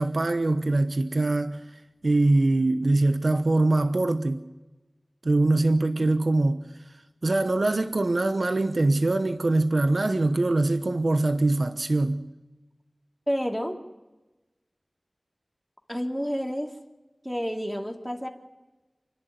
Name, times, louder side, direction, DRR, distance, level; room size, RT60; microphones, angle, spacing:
voice 1, 0.0-1.6 2.0-4.5 5.2-6.6 7.2-12.2, right 2 dB, 75° right, 0.9 m, -23 dB
voice 2, 13.3-13.8 15.9-16.7 17.2-18.3, equal, ahead, 2.8 m, -29 dB
28.5 x 11.0 x 9.4 m
wide cardioid pair, 40°, 0 cm